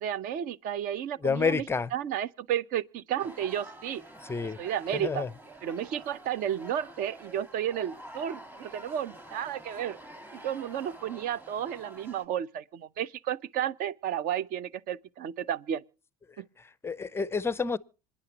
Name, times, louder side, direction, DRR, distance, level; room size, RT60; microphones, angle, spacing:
voice 1, 0.0-1.6 1.9-4.0 4.6-5.2 5.6-10.0 10.3-15.8 16.4-16.5, right 10 dB, 45° right, 0.7 m, -32 dB
voice 2, 1.2-1.9 4.2-4.6 4.9-5.3 16.3-17.8, left 5 dB, 15° left, 0.5 m, -30 dB
sound 1, 3.2-12.2, right 1 dB, 10° right, 1.7 m, -48 dB
26.5 x 10.0 x 2.9 m
supercardioid pair, 120°, 19 cm